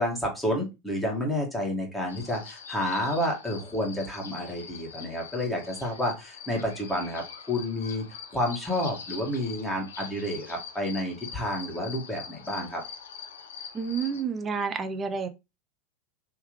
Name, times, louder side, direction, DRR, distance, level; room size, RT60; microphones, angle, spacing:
voice 1, 0.0-8.0 8.3-12.8, left 1 dB, 5° left, 1.8 m, -30 dB
sound 1, 2.1-14.2, left 6 dB, 85° left, 0.8 m, -43 dB
voice 2, 13.7-15.3, right 5 dB, 25° right, 0.6 m, -29 dB
3.6 x 3.1 x 3.2 m
hypercardioid pair, 95°, 0 cm